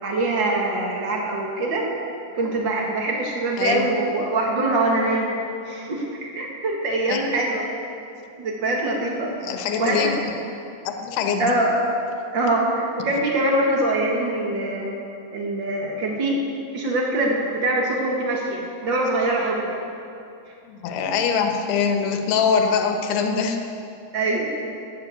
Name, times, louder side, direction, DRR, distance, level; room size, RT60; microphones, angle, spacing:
voice 1, 0.0-1.9 2.3-5.4 5.6-7.7 8.4-9.3 9.8-10.1 11.4-11.7 12.3-14.9 15.3-16.4 16.7-19.8 24.1-24.5, right 2 dB, 75° right, -1 dB, 1.0 m, -23 dB
voice 2, 3.6-3.9 7.1-7.2 9.4-10.3 10.8-11.5 20.6-23.7, left 6 dB, 75° left, 4 dB, 3.2 m, -23 dB
13.5 x 10.5 x 8.5 m, 2.6 s
omnidirectional pair, 4.9 m